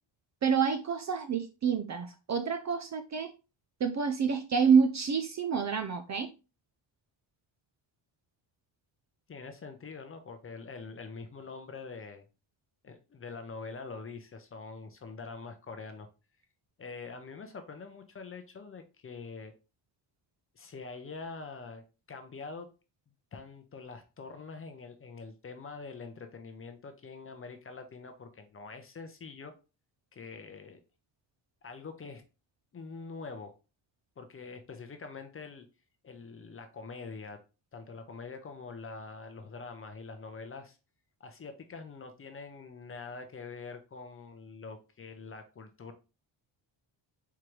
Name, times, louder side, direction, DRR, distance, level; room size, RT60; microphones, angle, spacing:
voice 1, 0.4-3.3 3.8-6.3, right 6 dB, 40° right, 7 dB, 0.4 m, -28 dB
voice 2, 9.3-12.3 12.8-16.1 16.8-19.5 20.5-22.7 23.3-29.5 30.1-30.8 31.6-32.2 32.7-33.5 34.2-35.7 36.0-37.4 37.7-40.8 41.2-45.9, left 4 dB, 30° left, 7 dB, 0.6 m, -44 dB
4.6 x 3.7 x 3.1 m, 0.31 s
wide cardioid pair, 175°, 46 cm